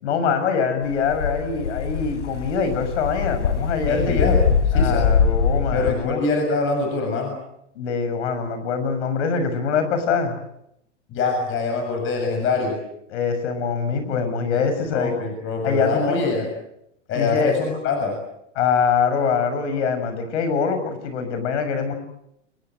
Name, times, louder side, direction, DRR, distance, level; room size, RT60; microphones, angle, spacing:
voice 1, 0.0-4.3 4.7-6.3 7.8-10.4 13.1-15.1 15.6-16.2 17.2-17.6 18.6-21.9, left 5 dB, 70° left, 9 dB, 6.9 m, -23 dB
sound 1, 0.9-5.9, left 6 dB, 85° left, 3.4 m, -22 dB
voice 2, 3.9-4.4 4.7-5.0 5.7-7.4 11.1-12.8 14.5-16.5 17.1-18.2, left 4 dB, 35° left, 4 dB, 7.1 m, -24 dB
29.5 x 21.5 x 7.8 m, 0.79 s
hypercardioid pair, 125°, 37 cm